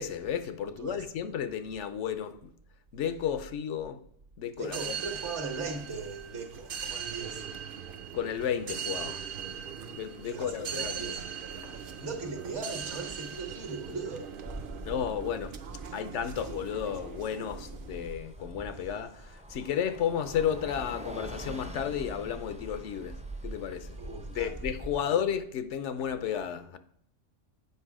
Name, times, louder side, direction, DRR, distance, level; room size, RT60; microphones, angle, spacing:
voice 1, 0.0-2.4 2.9-4.0 4.4-5.0 8.1-9.2 9.9-11.1 11.6-11.7 14.8-15.5 15.9-23.2 23.4-24.0 24.3-26.8, left 8 dB, 75° left, 0.9 m, -33 dB
voice 2, 0.6-1.1 4.5-7.5 10.2-14.4 14.8-14.9 15.8-16.0 24.0-24.6 24.9-25.2, right 4 dB, 70° right, 1.6 m, -39 dB
sound 1, 4.6-18.1, right 7 dB, 55° right, 0.7 m, -40 dB
Bus, 14.3-25.0, right 1 dB, 10° right, 0.4 m, -43 dB
8.2 x 5.4 x 4.8 m
omnidirectional pair, 1.3 m